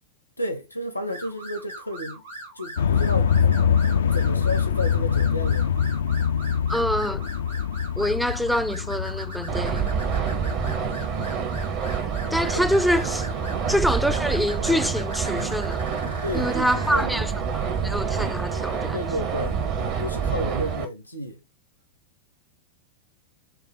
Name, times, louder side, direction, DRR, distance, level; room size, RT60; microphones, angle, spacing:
voice 1, 0.4-2.2 2.6-3.3 4.1-5.8 10.7-11.0 12.5-12.7 13.5-13.7 16.2-17.1 18.9-19.6 20.0-21.4, left 1 dB, 85° left, 0.9 m, -32 dB
sound 1, 1.1-17.0, right 2 dB, 70° right, 2.4 m, -41 dB
sound 2, 2.8-11.2, left 7 dB, 65° left, 0.3 m, -24 dB
voice 2, 6.7-7.2 8.0-9.9 12.3-13.3 13.7-15.8 16.3-19.0, equal, ahead, 0.4 m, -25 dB
sound 3, 9.5-20.8, right 6 dB, 40° right, 1.0 m, -27 dB
5.8 x 2.2 x 4.0 m
figure-of-eight pair, 90°, 0 cm